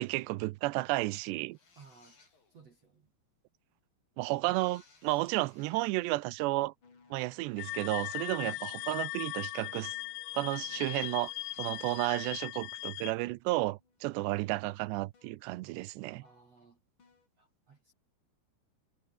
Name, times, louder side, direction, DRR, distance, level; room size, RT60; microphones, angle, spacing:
voice 1, 0.0-1.6 4.2-6.7 7.1-10.0 10.3-11.3 11.6-16.2, right 20 dB, 80° right, 2.6 m, -32 dB
sound 1, 1.5-2.7 4.5-5.9 7.5-9.6 10.5-12.5, left 4 dB, 45° left, 8.7 m, -64 dB
voice 2, 1.8-2.2 2.5-3.1 4.4-4.5 8.4-8.6 16.2-16.8 17.4-17.9, right 5 dB, 40° right, 2.9 m, -57 dB
sound 2, 6.8-11.7 12.0-12.3 12.8-13.0 13.6-14.0 15.1-15.4 16.2-16.6 17.0-17.3, left 4 dB, 30° left, 3.6 m, -62 dB
sound 3, 7.6-13.1, left 18 dB, 80° left, 3.1 m, -39 dB
omnidirectional pair, 5.6 m